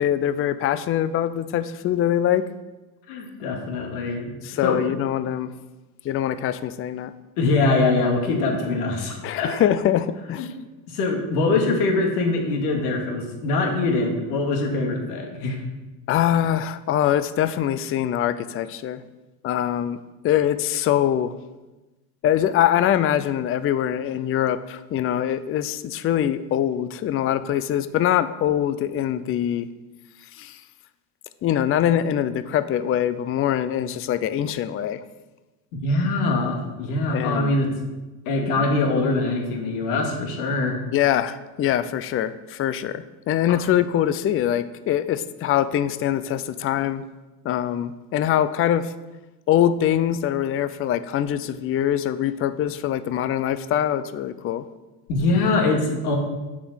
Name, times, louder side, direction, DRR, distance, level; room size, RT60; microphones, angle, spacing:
voice 1, 0.0-2.5 4.4-5.5 6.0-7.1 9.2-10.5 16.1-19.0 19.4-20.0 20.2-21.3 22.2-29.7 30.4-30.6 31.4-35.0 37.1-37.6 40.9-47.0 47.4-48.9 49.5-54.6, left 10 dB, 30° left, 13 dB, 0.5 m, -23 dB
voice 2, 3.1-4.3 4.6-4.8 7.4-9.5 10.4-10.5 10.9-15.6 35.7-37.7 38.3-40.8 55.1-56.2, left 3 dB, 80° left, 1 dB, 2.4 m, -23 dB
7.2 x 7.1 x 6.3 m, 1.1 s
supercardioid pair, 100°, 46 cm